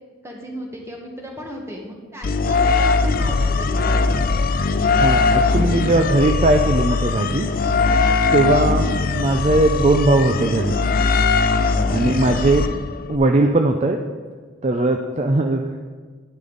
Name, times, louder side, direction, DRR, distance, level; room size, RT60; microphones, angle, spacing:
voice 1, 0.2-4.0 11.6-12.0, equal, 15° right, 0 dB, 1.4 m, -36 dB
sound 1, 2.2-13.2, left 4 dB, 45° left, 0.4 m, -20 dB
voice 2, 5.0-7.5 8.3-10.7 11.9-12.7 13.1-14.0 14.6-15.7, right 2 dB, 30° right, 4 dB, 0.4 m, -19 dB
10.5 x 9.8 x 4.0 m, 1.5 s
head